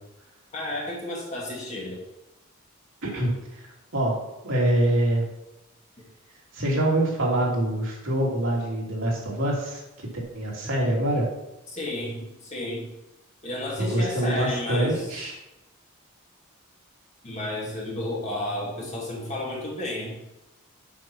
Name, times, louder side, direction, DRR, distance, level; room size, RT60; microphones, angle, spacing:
voice 1, 0.5-2.0 11.7-12.9 13.4-15.2 17.2-20.2, left 1 dB, 30° left, -4 dB, 2.5 m, -32 dB
voice 2, 3.0-3.7 3.9-4.2 4.4-5.3 6.5-9.8 10.3-11.2 13.8-15.3, right 1 dB, 70° right, -3 dB, 2.8 m, -25 dB
7.7 x 5.9 x 6.1 m, 0.92 s
head